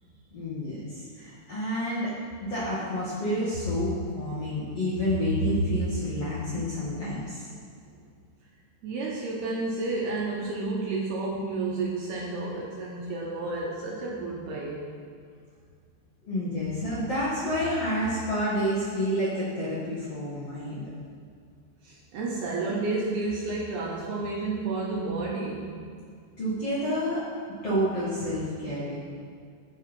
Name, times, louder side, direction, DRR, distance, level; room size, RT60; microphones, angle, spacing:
voice 1, 0.3-2.1 2.4-7.5 16.2-20.9 26.4-27.3 27.6-28.9, equal, 50° left, -9 dB, 1.9 m, -29 dB
voice 2, 8.8-14.9 21.8-25.7, right 3 dB, 70° right, -3 dB, 2.5 m, -31 dB
13.5 x 6.1 x 5.3 m, 2.2 s
omnidirectional pair, 5.5 m